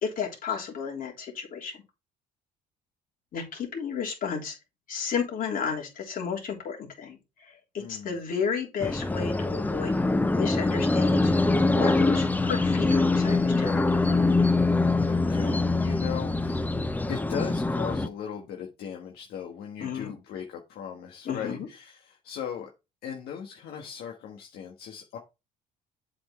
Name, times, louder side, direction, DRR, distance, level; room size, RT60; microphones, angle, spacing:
voice 1, 0.0-1.8 3.3-4.6 4.9-9.9 10.3-14.3 19.8-20.1 21.2-21.7, left 6 dB, 55° left, 3.2 m, -33 dB
voice 2, 7.8-8.1 15.1-16.7 17.1-22.7 23.0-25.2, left 8 dB, 70° left, 1.5 m, -38 dB
sound 1, 8.8-18.1, left 3 dB, 10° left, 0.6 m, -24 dB
7.8 x 4.5 x 4.3 m
cardioid pair, 110°, 17 cm